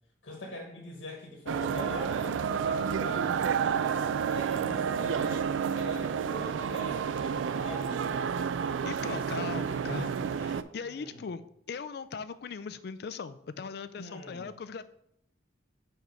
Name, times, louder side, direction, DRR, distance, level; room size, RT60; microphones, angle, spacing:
voice 1, 0.2-4.0 4.3-8.3 10.8-11.3 14.0-14.6, left 2 dB, 85° left, 0 dB, 1.2 m, -44 dB
sound 1, 1.5-10.6, right 7 dB, 85° right, 0.3 m, -30 dB
voice 2, 8.8-11.4 11.7-14.9, left 5 dB, 60° left, 14 dB, 0.4 m, -39 dB
4.7 x 4.4 x 5.4 m, 0.74 s
head